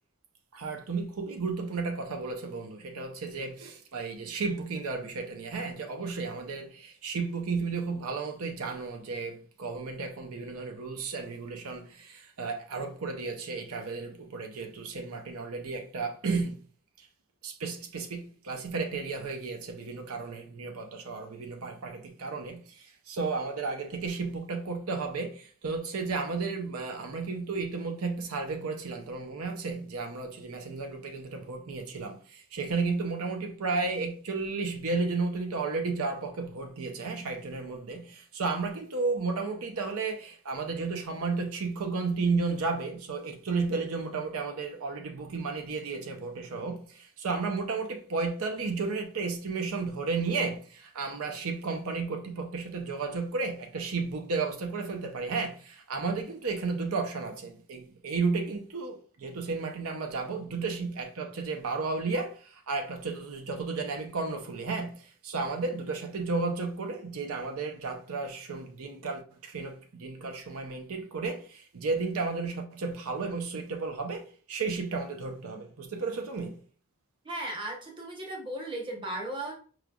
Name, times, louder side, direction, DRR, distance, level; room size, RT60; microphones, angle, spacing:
voice 1, 0.5-16.6 17.0-17.1 17.4-76.6, right 4 dB, 75° right, 0.6 m, -33 dB
voice 2, 77.2-79.5, right 1 dB, 20° right, 0.9 m, -36 dB
4.9 x 3.1 x 2.3 m
head